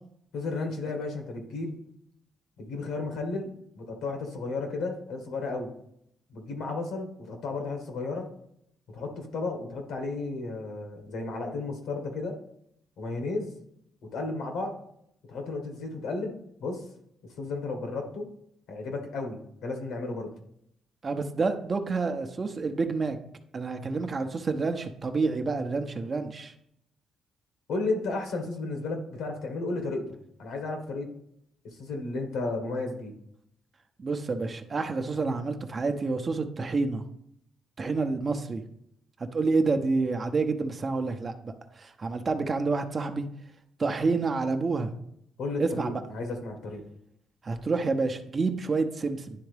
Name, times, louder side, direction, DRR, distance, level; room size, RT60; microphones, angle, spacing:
voice 1, 0.3-1.8 2.6-3.5 3.7-5.7 6.3-8.3 8.9-12.3 13.0-13.5 14.1-14.8 15.3-16.8 17.4-18.3 18.7-20.3 27.7-30.0 30.4-31.1 31.8-33.1 45.4-46.8, left 3 dB, 80° left, 3 dB, 1.6 m, -33 dB
voice 2, 21.0-23.2 23.5-26.5 34.0-37.0 37.8-38.6 39.3-43.3 43.8-44.9 45.6-46.0 47.4-49.3, right 4 dB, 35° right, 6 dB, 0.8 m, -28 dB
10.5 x 3.5 x 3.4 m, 0.73 s
cardioid pair, 90°, 0 cm